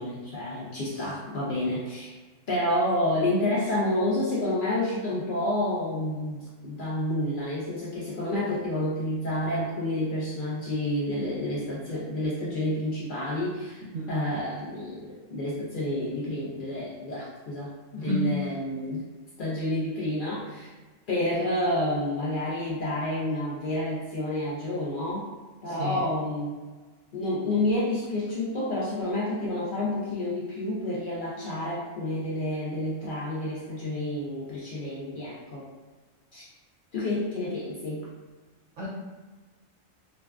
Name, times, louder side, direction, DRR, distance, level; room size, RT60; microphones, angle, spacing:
voice 1, 0.0-2.1 2.5-19.1 19.4-20.7 21.1-25.3 25.6-26.6 27.1-35.7 36.3-36.5 36.9-38.1, left 1 dB, 65° left, -6 dB, 0.5 m, -29 dB
voice 2, 25.7-26.0 38.8-38.9, equal, 75° right, -5 dB, 0.9 m, -30 dB
2.5 x 2.2 x 2.2 m, 1.3 s
omnidirectional pair, 1.4 m